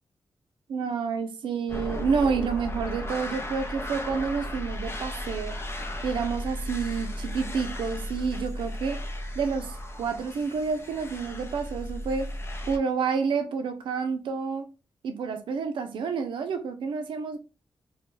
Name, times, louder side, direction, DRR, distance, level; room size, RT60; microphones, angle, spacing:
voice 1, 0.7-5.6 6.0-9.0 9.4-12.3 12.7-14.7 15.0-17.4, right 5 dB, 90° right, 0.4 m, -29 dB
sound 1, 1.7-12.8, left 1 dB, 30° left, 0.5 m, -35 dB
2.2 x 2.1 x 3.0 m
cardioid pair, 60°, 8 cm